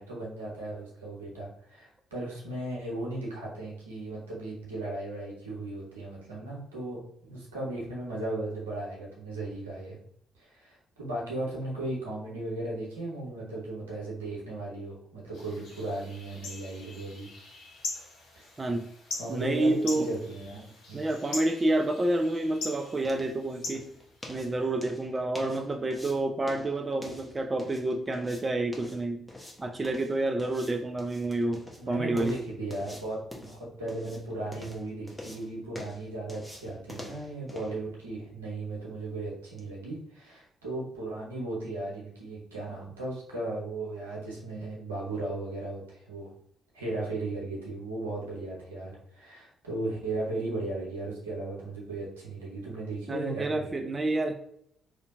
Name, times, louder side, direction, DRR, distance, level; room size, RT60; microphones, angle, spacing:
voice 1, 0.0-10.0 10.3-17.3 18.4-18.5 19.2-20.6 20.9-21.1 31.8-46.3 46.7-53.7, right 2 dB, 85° right, -4 dB, 0.8 m, -36 dB
sound 1, 15.3-24.7, left 3 dB, 65° left, 0.7 m, -42 dB
voice 2, 18.6-18.9 19.3-20.1 20.9-23.9 24.3-29.2 29.6-32.4 53.1-54.3, right 2 dB, 30° right, 5 dB, 0.3 m, -29 dB
sound 2, 22.0-39.7, left 1 dB, 10° left, 0.9 m, -48 dB
2.7 x 2.2 x 3.5 m, 0.70 s
figure-of-eight pair, 40°, 0 cm